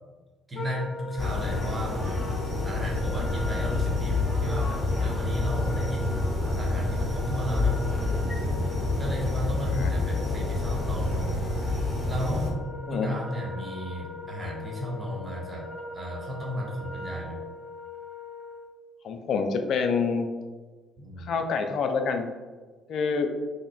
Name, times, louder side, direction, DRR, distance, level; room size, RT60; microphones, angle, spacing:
Wind instrument woodwind instrument, 0.5-18.7, left 2 dB, 40° left, 0.8 m, -41 dB
voice 1, 0.5-2.2 2.6-6.2 6.5-8.3 9.0-11.3 12.1-15.7 15.9-17.4 21.0-21.4, equal, 25° right, -3 dB, 1.1 m, -34 dB
sound 1, 1.2-12.5, left 2 dB, 15° left, 1.2 m, -28 dB
voice 2, 19.0-20.3 21.2-22.3 22.9-23.3, left 5 dB, 55° left, 6 dB, 0.3 m, -27 dB
4.9 x 2.1 x 2.3 m, 1.4 s
figure-of-eight pair, 45°, 0 cm